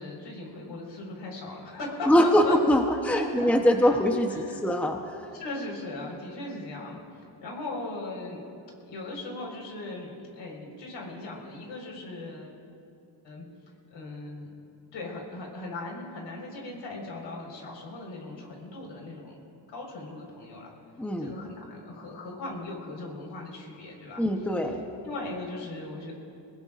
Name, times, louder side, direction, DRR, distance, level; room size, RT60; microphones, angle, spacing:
voice 1, 0.0-2.6 3.1-4.0 4.3-4.7 5.3-7.0 7.4-8.5 8.8-12.5 13.2-13.4 13.9-14.5 14.9-19.4 19.7-20.7 21.2-24.2 24.6-24.8 25.0-26.1, left 2 dB, 70° left, -1 dB, 4.7 m, -38 dB
voice 2, 2.1-5.0 21.0-21.3 24.2-24.8, equal, 5° left, 3 dB, 0.9 m, -23 dB
24.0 x 20.5 x 2.5 m, 2.5 s
cardioid pair, 120°, 46 cm